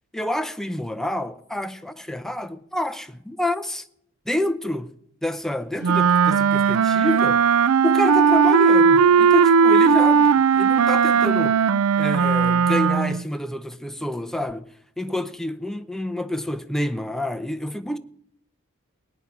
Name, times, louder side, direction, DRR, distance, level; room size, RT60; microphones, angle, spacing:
voice 1, 0.1-3.9 4.3-4.9 5.2-7.4 7.8-11.6 12.0-14.6 15.0-18.0, left 1 dB, ahead, 0.6 m, -28 dB
Wind instrument woodwind instrument, 5.8-13.2, right 6 dB, 90° right, 0.4 m, -17 dB
18.0 x 9.6 x 6.1 m
head